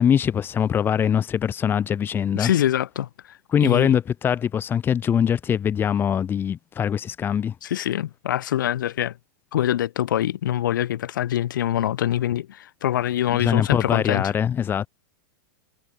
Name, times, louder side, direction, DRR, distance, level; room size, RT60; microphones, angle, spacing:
voice 1, 0.0-2.5 3.5-7.5 13.4-14.9, left 8 dB, 20° left, 4.3 m, -22 dB
voice 2, 2.3-4.0 7.6-9.1 9.5-14.3, left 12 dB, 80° left, 6.9 m, -24 dB
supercardioid pair, 145°, 10 cm